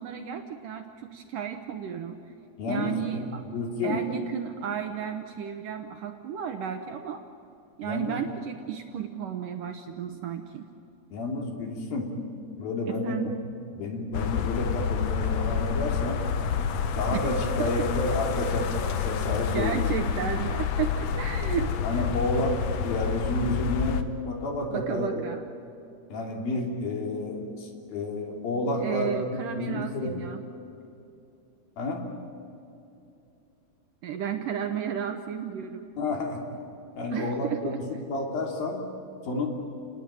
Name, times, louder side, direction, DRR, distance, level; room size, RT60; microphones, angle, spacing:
voice 1, 0.0-2.2 2.7-3.4 3.8-7.2 7.8-10.7 12.9-13.4 17.6-17.7 19.5-22.0 24.7-25.5 28.8-30.4 34.0-35.9 37.1-38.0, right 8 dB, 70° right, 6 dB, 2.2 m, -33 dB
voice 2, 2.6-3.3 3.5-4.0 7.8-8.2 11.1-12.1 12.6-13.2 13.7-16.2 17.0-19.9 21.8-25.2 26.1-29.2 29.5-30.2 31.8-32.1 36.0-36.4 36.9-38.8 39.2-39.5, left 2 dB, 60° left, 1 dB, 4.8 m, -30 dB
sound 1, 14.1-24.0, left 6 dB, 80° left, 1.5 m, -28 dB
30.0 x 20.0 x 9.0 m, 2.7 s
omnidirectional pair, 4.8 m